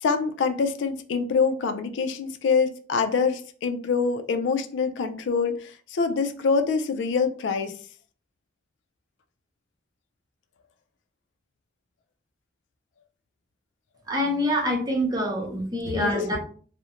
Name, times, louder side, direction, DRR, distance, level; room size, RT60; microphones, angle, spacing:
voice 1, 0.0-7.7 15.9-16.2, left 5 dB, 85° left, 0.3 m, -25 dB
voice 2, 14.1-16.4, left 1 dB, 20° right, 0.6 m, -25 dB
2.4 x 2.0 x 2.8 m
head